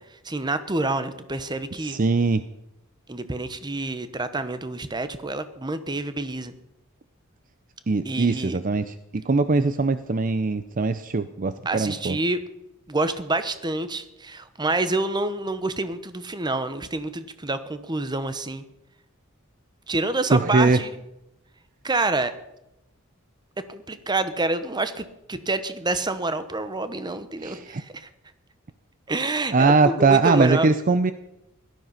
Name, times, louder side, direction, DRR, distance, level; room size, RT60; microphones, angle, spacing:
voice 1, 0.0-2.0 3.1-6.5 8.0-8.6 11.6-12.4 12.9-18.6 19.9-21.0 21.8-22.3 23.7-28.1 29.1-30.7, right 2 dB, 20° right, 12 dB, 1.0 m, -27 dB
voice 2, 1.8-2.4 7.9-12.2 20.3-20.8 27.4-27.8 29.5-31.1, right 3 dB, 40° right, 12 dB, 0.6 m, -21 dB
17.5 x 12.0 x 5.7 m, 0.87 s
head